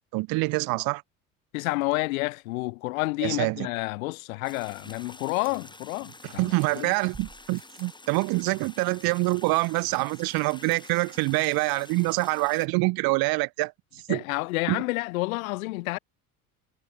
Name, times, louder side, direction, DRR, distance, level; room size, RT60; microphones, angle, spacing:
voice 1, 0.1-1.0 3.2-3.7 6.2-13.7 14.1-14.2 14.7-14.8, right 26 dB, 55° right, 0.8 m, -26 dB
voice 2, 1.5-6.9 14.1-16.0, left 23 dB, 75° left, 0.6 m, -30 dB
sound 1, 4.4-12.7, left 2 dB, 10° left, 2.6 m, -48 dB
sound 2, 5.4-6.4 7.1-8.0 10.7-11.3 11.6-11.7 11.9-12.0, right 4 dB, 20° right, 5.9 m, -51 dB
hypercardioid pair, 70°, 43 cm